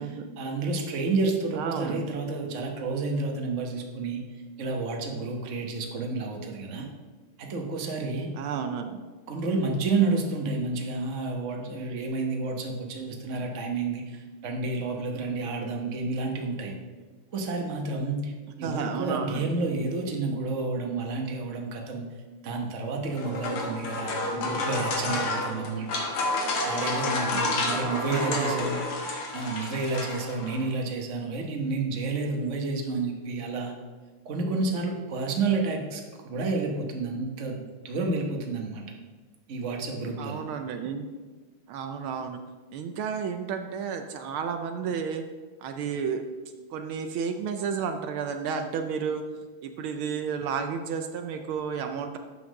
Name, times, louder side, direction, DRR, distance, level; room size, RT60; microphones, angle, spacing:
voice 1, 0.0-4.2 4.6-6.9 7.4-8.3 9.3-16.7 17.3-18.3 18.6-22.1 22.4-26.0 26.6-28.8 29.3-33.7 34.2-37.5 37.8-38.8 39.5-40.4, right 3 dB, 40° right, 2 dB, 1.3 m, -30 dB
voice 2, 1.5-2.1 8.3-9.0 18.6-19.5 27.3-28.7 40.2-41.1 41.7-42.4 42.7-45.3 45.6-46.2 46.7-49.2 49.6-52.2, right 6 dB, 80° right, 6 dB, 1.5 m, -32 dB
sound 1, 23.0-30.7, left 2 dB, 85° left, 2.3 m, -30 dB
8.2 x 5.8 x 6.3 m, 1.4 s
omnidirectional pair, 2.4 m